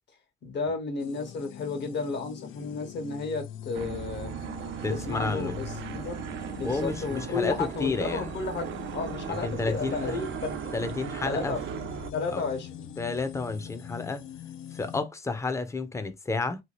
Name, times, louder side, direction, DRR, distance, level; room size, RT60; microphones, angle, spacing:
voice 1, 0.4-4.3 4.9-6.2 6.6-10.6 11.2-11.6 12.1-12.9, left 4 dB, 60° left, 1.1 m, -33 dB
sound 1, 1.0-15.0, left 10 dB, 80° left, 0.4 m, -43 dB
sound 2, 3.7-12.1, right 9 dB, 70° right, 0.4 m, -37 dB
voice 2, 4.8-5.6 6.6-8.3 9.3-10.2 10.7-11.5 12.3-12.4 13.0-14.2 14.7-16.6, left 3 dB, 15° left, 0.5 m, -31 dB
2.9 x 2.3 x 2.9 m
cardioid pair, 90°, 20 cm